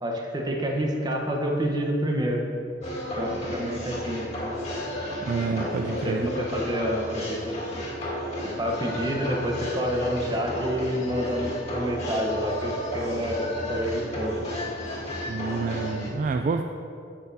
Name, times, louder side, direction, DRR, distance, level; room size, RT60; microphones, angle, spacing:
voice 1, 0.0-2.4 3.2-4.3 5.6-7.5 8.4-14.4, equal, 20° right, 1 dB, 1.0 m, -28 dB
sound 1, 2.8-16.1, equal, 35° left, 1.9 m, -33 dB
voice 2, 5.3-6.3 15.3-16.6, right 4 dB, 45° right, 5 dB, 0.3 m, -28 dB
16.0 x 6.1 x 2.7 m, 2.6 s
head